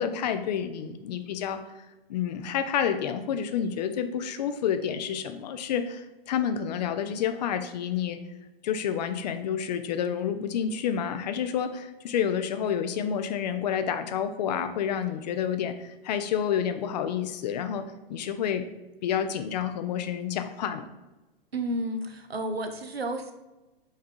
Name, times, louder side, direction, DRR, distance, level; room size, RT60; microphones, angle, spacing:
voice 1, 0.0-1.6 2.1-8.2 8.6-15.7 16.0-18.7 19.0-20.9, left 8 dB, 45° left, 9 dB, 0.7 m, -29 dB
voice 2, 21.5-23.3, right 1 dB, 90° right, 7 dB, 0.9 m, -31 dB
5.5 x 3.6 x 5.3 m, 1.1 s
figure-of-eight pair, 115°, 30 cm